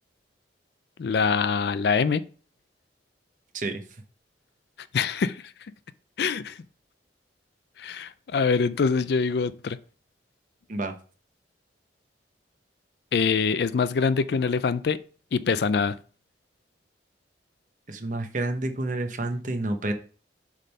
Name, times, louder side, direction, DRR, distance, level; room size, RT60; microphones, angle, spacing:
voice 1, 1.0-2.2 4.9-5.4 6.2-6.6 7.8-9.8 13.1-15.0 15.3-16.0, left 5 dB, 55° left, 0.4 m, -24 dB
voice 2, 17.9-19.9, right 2 dB, 45° right, 1.0 m, -29 dB
7.4 x 3.7 x 5.5 m
head